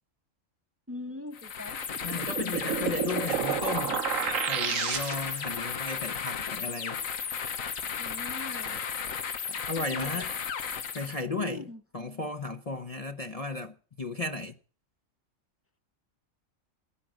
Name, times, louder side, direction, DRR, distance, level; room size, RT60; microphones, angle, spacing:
voice 1, 0.9-1.8 2.6-3.0 8.0-8.8 9.8-10.2 11.3-11.8, left 1 dB, 10° right, 0.8 m, -41 dB
sound 1, 1.3-11.2, left 7 dB, 80° left, 1.5 m, -34 dB
sound 2, 1.9-5.5, right 8 dB, 75° right, 1.3 m, -31 dB
voice 2, 2.0-4.0 4.5-7.0 9.5-10.3 10.9-11.7 11.9-14.5, left 3 dB, 35° left, 0.7 m, -35 dB
16.0 x 10.0 x 7.5 m
omnidirectional pair, 1.4 m